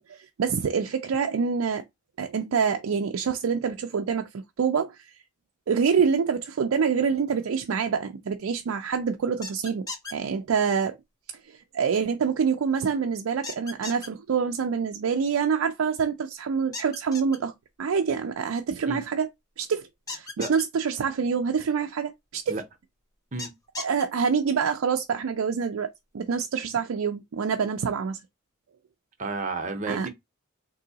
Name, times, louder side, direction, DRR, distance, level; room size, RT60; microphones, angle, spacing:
voice 1, 0.0-1.8 2.2-4.3 4.6-5.0 5.7-9.9 10.1-11.0 11.5-17.5 17.8-19.3 19.6-22.6 23.8-28.2 29.9-30.1, right 6 dB, 90° right, 0.4 m, -26 dB
sound 1, 9.4-10.1 13.4-14.1 16.7-17.4 20.1-20.6 23.4-24.0, left 3 dB, 15° left, 0.7 m, -36 dB
voice 2, 29.2-30.1, right 3 dB, 40° right, 0.7 m, -31 dB
3.8 x 2.7 x 2.7 m
head